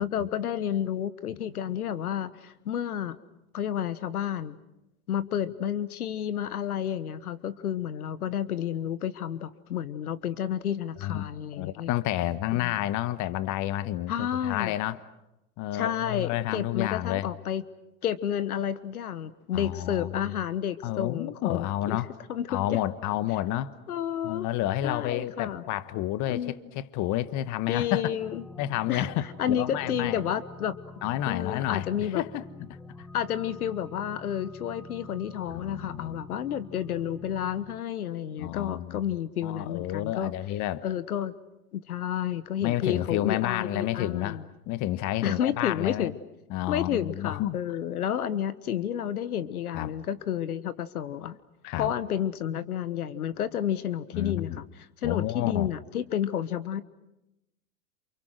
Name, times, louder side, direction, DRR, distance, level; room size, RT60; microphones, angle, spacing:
voice 1, 0.0-3.2 3.5-4.6 5.1-11.9 12.5-12.7 14.1-14.7 15.7-17.6 18.0-22.0 22.3-22.8 23.9-24.5 24.8-25.6 26.3-26.6 27.7-28.4 28.9-30.8 31.3-32.2 33.1-40.3 40.8-41.4 41.7-44.4 45.2-46.1 46.7-51.4 51.8-54.6 55.0-56.8, left 9 dB, 85° left, 15 dB, 1.4 m, -30 dB
voice 2, 11.5-15.0 15.6-17.3 19.5-20.3 20.8-22.1 22.5-23.7 24.2-28.0 28.6-30.2 31.0-31.9 32.1-32.4 33.0-33.1 35.5-36.2 38.4-39.1 39.4-40.8 42.6-44.4 44.7-46.1 46.5-47.8 49.7-49.9 51.6-51.9 54.1-54.6 55.0-55.7, left 14 dB, 40° left, 14 dB, 1.3 m, -30 dB
sound 1, 28.2-37.8, left 3 dB, 5° left, 1.7 m, -46 dB
29.0 x 28.0 x 6.3 m, 0.92 s
hypercardioid pair, 105°, 43 cm